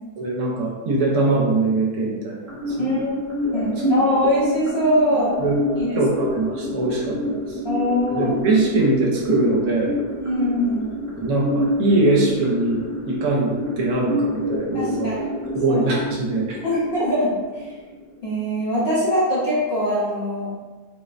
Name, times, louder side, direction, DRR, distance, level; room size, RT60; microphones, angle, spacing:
voice 1, 0.2-2.4 2.7-2.9 3.8-3.9 5.4-5.6 5.9-7.6 8.1-9.9 11.2-15.1 15.5-16.6, right 2 dB, 75° right, -2 dB, 1.1 m, -22 dB
sound 1, 2.5-18.5, left 1 dB, 35° right, 0.5 m, -28 dB
voice 2, 2.8-5.4 5.8-6.0 7.6-8.4 10.2-10.8 14.7-15.2 15.7-15.8 16.6-17.7 18.2-20.5, equal, 55° left, -8 dB, 0.8 m, -22 dB
3.7 x 2.1 x 2.4 m, 1.3 s
omnidirectional pair, 1.7 m